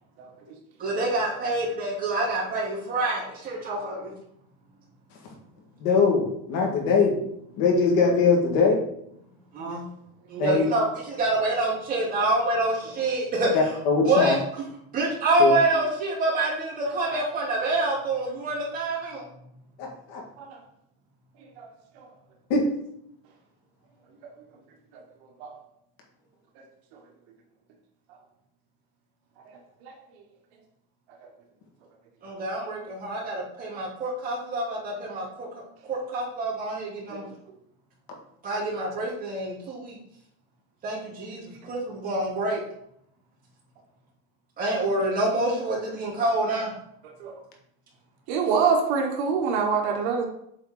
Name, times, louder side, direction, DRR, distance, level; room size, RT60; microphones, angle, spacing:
voice 1, 0.8-4.1 9.5-9.8 10.3-13.7 14.0-14.7 14.9-19.3 32.2-35.6 35.9-37.2 38.4-40.0 40.8-42.6 44.6-46.7, right 2 dB, 25° right, -6 dB, 2.9 m, -26 dB
voice 2, 5.8-7.1 7.6-8.8 10.4-10.6 13.5-14.3 15.4-15.5 19.8-20.2 22.5-22.7, left 4 dB, 55° left, 1 dB, 1.9 m, -21 dB
voice 3, 16.8-17.2 20.4-20.6 21.6-21.7 22.0-22.1 25.4-25.5 29.8-29.9 32.6-32.7 37.1-37.2 47.0-47.4 48.3-50.3, right 5 dB, 65° right, 2 dB, 1.4 m, -26 dB
7.9 x 4.1 x 3.8 m, 0.74 s
cardioid pair, 155°, 35 cm